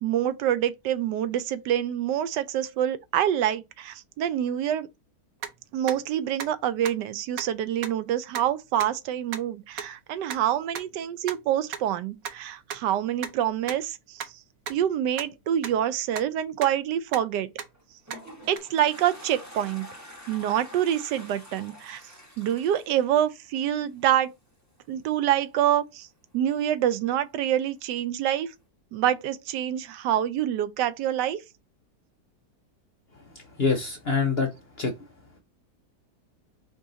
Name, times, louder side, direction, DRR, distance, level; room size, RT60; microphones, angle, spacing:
voice 1, 0.0-4.9 5.7-14.3 14.7-17.5 18.5-19.9 20.3-22.0 22.4-24.3 24.9-26.1 26.3-28.5 28.9-31.4, right 11 dB, 85° right, 1.2 m, -26 dB
sound 1, 5.4-5.5 5.9-6.0 6.4-6.5 6.8-6.9 7.4-7.5 7.8-7.9 8.3-8.4 8.8-8.9 9.3-9.4 9.8-9.9 10.3-10.4 10.7-10.8 11.3-11.4 11.7-11.8 12.2-12.3 12.7-12.8 13.2-13.3 13.7-13.8 14.2-14.3 14.7-14.8 15.2-15.3 15.6-15.7 16.1-16.2 16.6-16.7 17.1-17.2 17.6-17.7 18.1-18.2 18.6-18.7, right 8 dB, 65° right, 1.0 m, -33 dB
Toilet flush, 17.7-24.1, equal, 10° right, 1.1 m, -46 dB
voice 2, 33.6-34.5 34.8-34.9, left 4 dB, 55° left, 0.7 m, -24 dB
4.5 x 2.9 x 3.8 m
omnidirectional pair, 1.8 m